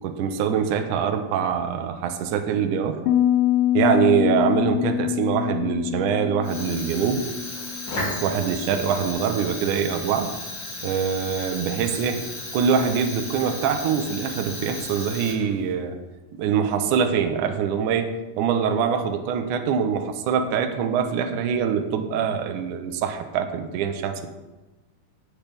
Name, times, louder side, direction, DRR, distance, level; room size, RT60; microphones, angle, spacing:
voice 1, 0.0-3.0 3.7-7.3 8.2-10.3 10.8-12.3 12.5-16.0 16.3-24.3, right 7 dB, 80° right, 6 dB, 2.2 m, -24 dB
Piano, 3.1-8.7, left 12 dB, 80° left, 2.2 m, -25 dB
Fire, 6.4-15.7, left 2 dB, 35° left, 2.6 m, -34 dB
17.0 x 5.9 x 3.5 m, 1.1 s
omnidirectional pair, 3.8 m